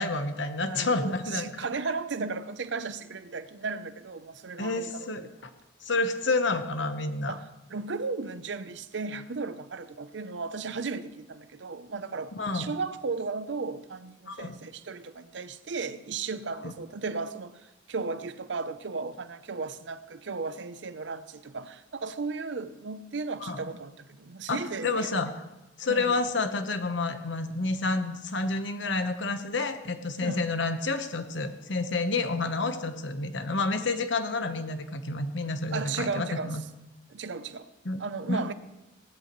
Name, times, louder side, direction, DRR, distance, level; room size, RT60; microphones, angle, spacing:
voice 1, 0.0-1.5 4.6-5.3 5.8-7.3 12.3-12.7 14.3-14.6 16.6-16.7 23.4-23.6 24.5-25.3 25.8-36.6 37.8-38.0 38.3-38.5, left 3 dB, 65° left, 1.1 m, -29 dB
voice 2, 0.6-5.3 7.3-25.1 25.9-26.2 30.2-30.5 35.7-36.6 37.1-37.7 38.0-38.5, right 4 dB, 65° right, 0.6 m, -35 dB
18.0 x 13.5 x 3.1 m
head